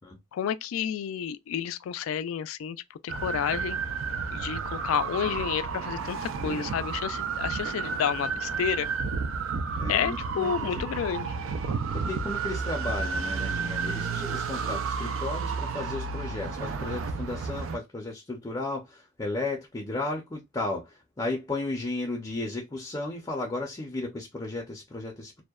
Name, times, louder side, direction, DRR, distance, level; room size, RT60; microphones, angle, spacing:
voice 1, 0.3-3.8 4.3-8.9 9.9-11.4, left 8 dB, 85° left, 0.3 m, -30 dB
sound 1, 3.1-17.8, right 5 dB, 75° right, 0.4 m, -31 dB
voice 2, 9.8-10.8 11.9-25.4, left 2 dB, 20° left, 0.5 m, -34 dB
2.6 x 2.1 x 2.2 m
head